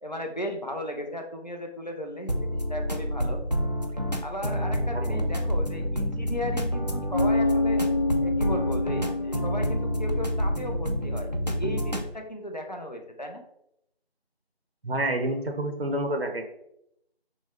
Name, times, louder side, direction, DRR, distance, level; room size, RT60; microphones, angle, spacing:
voice 1, 0.0-3.4 4.2-7.8 8.2-13.4, equal, 40° left, 4 dB, 0.6 m, -36 dB
sound 1, 2.3-12.1, equal, 40° right, 0.4 m, -28 dB
voice 2, 4.9-5.3 14.8-16.5, right 1 dB, 70° right, 5 dB, 0.8 m, -28 dB
Bass guitar, 7.1-10.8, left 2 dB, 25° left, 1.2 m, -27 dB
6.0 x 2.2 x 3.6 m, 0.79 s
figure-of-eight pair, 170°, 32 cm